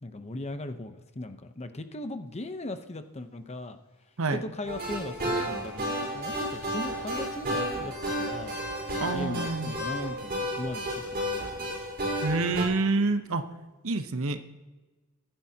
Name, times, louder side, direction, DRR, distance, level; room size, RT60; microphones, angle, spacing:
voice 1, 0.0-3.8 4.3-8.6 9.1-11.7, left 2 dB, 30° left, 8 dB, 0.8 m, -38 dB
sound 1, 4.7-12.6, equal, 45° right, 4.6 m, -32 dB
voice 2, 9.0-9.7 12.2-13.5 13.8-14.4, right 3 dB, 65° right, 9 dB, 0.9 m, -27 dB
24.5 x 10.5 x 2.9 m, 1.2 s
head